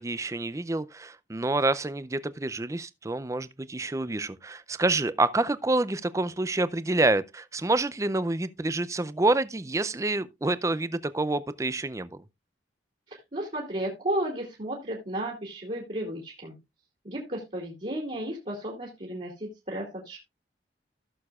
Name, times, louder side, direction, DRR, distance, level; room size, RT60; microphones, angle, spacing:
voice 1, 0.0-12.2, right 2 dB, 15° right, 0.4 m, -27 dB
voice 2, 13.3-16.5 17.0-20.2, right 1 dB, 40° right, 2.5 m, -33 dB
16.0 x 6.8 x 2.4 m
head